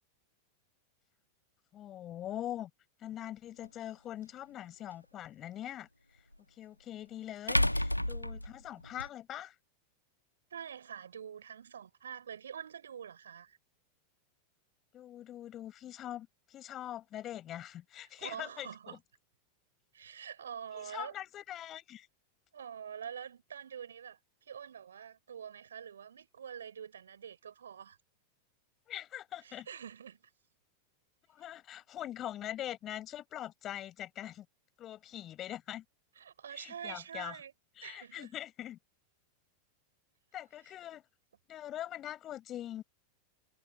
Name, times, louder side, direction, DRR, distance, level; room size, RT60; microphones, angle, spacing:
voice 1, 1.7-2.7 3.0-5.9 6.6-9.5 14.9-19.0 20.7-22.1 28.9-29.7 31.3-34.4 34.8-35.8 36.6-37.4 37.8-38.8 40.3-41.0 41.5-42.8, left 12 dB, 30° left, 7.9 m, -43 dB
sound 1, 3.6-3.7 6.3-6.4 7.5-9.1, left 1 dB, 90° left, 1.5 m, -30 dB
voice 2, 10.5-13.6 18.2-19.0 19.9-21.1 22.5-28.0 29.4-30.2 36.1-37.5 37.8-38.3, right 8 dB, 65° right, 6.3 m, -46 dB
figure-of-eight pair, 90°, 0 cm